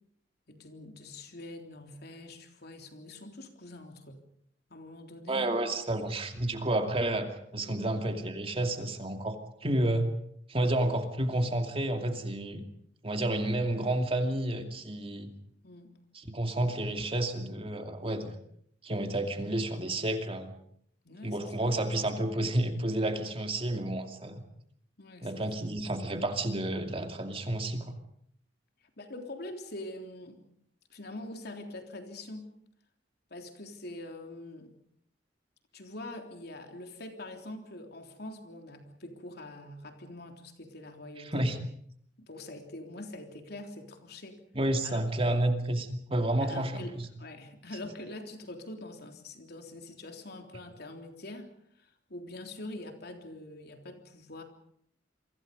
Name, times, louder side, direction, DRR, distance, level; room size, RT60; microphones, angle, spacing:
voice 1, 0.5-4.2 4.7-5.5 7.6-7.9 15.6-16.0 21.0-21.7 25.0-25.5 28.8-30.4 30.9-32.5 33.3-34.7 35.7-41.5 42.2-44.4 44.8-45.0 46.4-51.5 51.8-54.4, left 1 dB, 60° left, 4 dB, 3.5 m, -44 dB
voice 2, 5.3-9.4 9.6-10.1 10.5-12.6 13.0-15.3 16.3-18.3 18.8-20.6 21.2-24.4 25.2-28.0 41.3-41.5 44.5-47.1, right 1 dB, 30° right, 5 dB, 2.6 m, -30 dB
28.5 x 24.0 x 5.3 m, 0.67 s
head